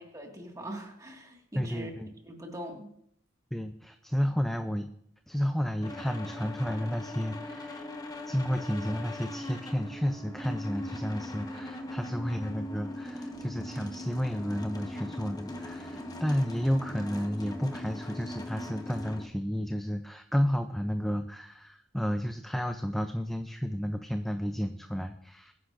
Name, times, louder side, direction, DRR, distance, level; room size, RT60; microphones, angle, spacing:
voice 1, 0.0-1.9 2.2-2.9, right 1 dB, 20° right, 1 dB, 1.9 m, -42 dB
voice 2, 1.5-2.1 3.5-4.9 5.3-7.9 8.2-25.5, equal, ahead, 7 dB, 0.5 m, -32 dB
sound 1, 5.8-19.3, left 1 dB, 20° left, 1.2 m, -40 dB
22.5 x 9.7 x 2.6 m, 0.67 s
head